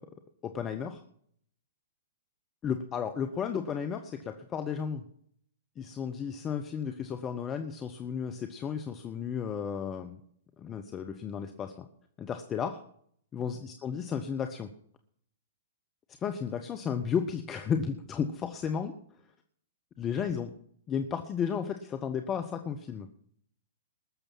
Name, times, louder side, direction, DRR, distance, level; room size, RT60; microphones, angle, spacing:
voice 1, 0.4-1.0 2.6-5.0 5.8-10.2 10.6-11.7 12.2-12.8 13.3-14.7 16.2-18.9 20.0-20.5 20.9-23.1, left 7 dB, 20° left, 7 dB, 0.9 m, -33 dB
19.5 x 6.8 x 5.8 m, 0.65 s
figure-of-eight pair, 110°, 0 cm